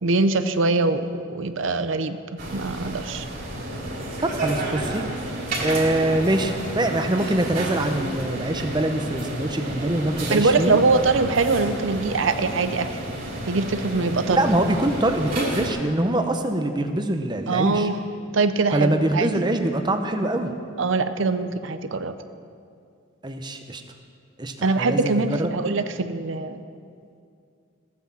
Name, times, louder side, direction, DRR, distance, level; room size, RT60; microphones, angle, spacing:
voice 1, 0.0-2.2 2.5-3.2 10.3-13.0 13.5-14.4 17.5-18.0 18.3-19.3 20.8-22.2 24.6-26.6, right 3 dB, 75° right, 10 dB, 0.7 m, -23 dB
sound 1, 2.4-15.7, right 1 dB, 45° right, 3.1 m, -31 dB
voice 2, 4.2-5.0 5.6-10.8 14.3-17.9 18.7-20.5 23.2-23.8 24.4-25.5, right 1 dB, 20° right, 6 dB, 0.8 m, -24 dB
15.5 x 9.6 x 7.3 m, 2.3 s
head